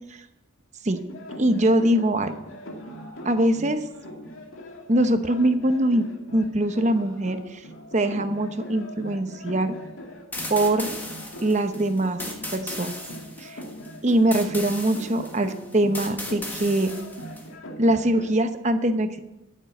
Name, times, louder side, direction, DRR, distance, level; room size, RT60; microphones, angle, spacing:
sound 1, 1.0-18.3, equal, 80° left, 2.3 m, -41 dB
voice 1, 1.4-2.3 3.2-3.8 4.9-6.1 6.3-7.6 7.9-9.8 10.5-10.9 11.4-12.2 12.5-12.9 13.4-13.6 14.0-16.9 17.8-19.2, right 1 dB, 35° right, 8 dB, 0.9 m, -22 dB
sound 2, 10.3-17.5, left 1 dB, 10° left, 1.6 m, -37 dB
13.5 x 7.5 x 7.1 m, 0.95 s
head